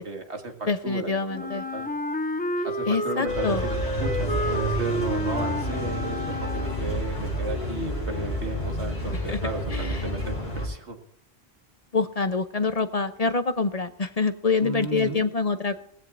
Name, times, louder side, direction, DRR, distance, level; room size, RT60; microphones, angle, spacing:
voice 1, 0.0-1.9 2.6-11.0 14.6-15.3, right 3 dB, 90° right, 4 dB, 2.2 m, -34 dB
voice 2, 0.7-1.6 2.9-3.6 9.3-9.4 9.7-10.1 11.9-15.8, left 4 dB, 40° left, 10 dB, 0.8 m, -26 dB
Wind instrument woodwind instrument, 1.3-7.1, left 1 dB, 10° left, 0.5 m, -30 dB
sound 1, 3.3-10.7, equal, 80° left, 6.9 m, -30 dB
19.5 x 15.5 x 2.6 m, 0.69 s
omnidirectional pair, 1.1 m